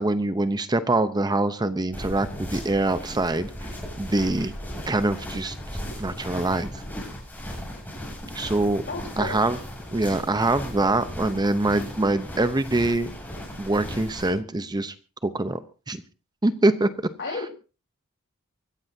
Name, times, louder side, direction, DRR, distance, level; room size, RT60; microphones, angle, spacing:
voice 1, 0.0-3.5 4.0-4.5 4.9-5.6 6.0-6.8 8.3-8.8 9.2-9.6 9.9-13.1 13.6-14.9 15.2-15.6 15.9-16.0 16.4-16.9, right 2 dB, 20° right, 12 dB, 0.7 m, -24 dB
sound 1, 1.9-14.3, equal, 10° left, 7.8 m, -37 dB
voice 2, 8.9-9.4 17.2-17.5, left 3 dB, 55° left, 3 dB, 4.1 m, -32 dB
24.0 x 15.0 x 2.7 m, 0.34 s
head